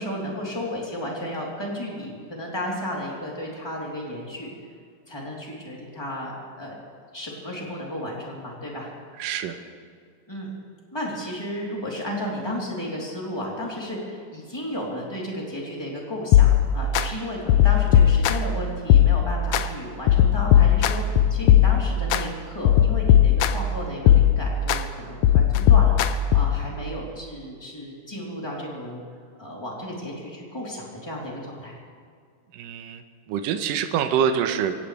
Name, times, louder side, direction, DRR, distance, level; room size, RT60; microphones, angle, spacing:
voice 1, 0.0-4.5 5.1-6.8 7.1-8.9 10.3-10.5 10.9-26.0 26.3-29.0 29.4-31.8, left 1 dB, 5° left, -4 dB, 3.2 m, -33 dB
voice 2, 9.2-9.6 32.5-34.8, right 8 dB, 80° right, 7 dB, 2.5 m, -25 dB
sound 1, 16.3-17.1 17.5-18.6 18.9-19.6 20.1-22.2 22.7-23.7 24.1-24.8 25.2-26.7, left 10 dB, 80° left, 1.6 m, -18 dB
25.0 x 17.0 x 3.4 m, 2.1 s
omnidirectional pair, 4.0 m